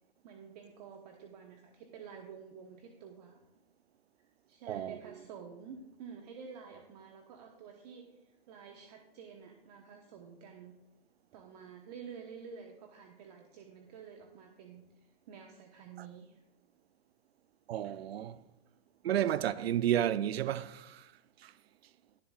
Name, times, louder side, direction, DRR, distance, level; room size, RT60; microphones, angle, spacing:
voice 1, 0.2-3.4 4.2-10.8 11.3-16.4, right 6 dB, 40° right, 1.1 m, -50 dB
voice 2, 4.7-5.0 17.7-18.4 19.0-21.1 21.4-21.5, right 11 dB, 75° right, 0.5 m, -32 dB
21.0 x 7.3 x 2.4 m
hypercardioid pair, 145°, 31 cm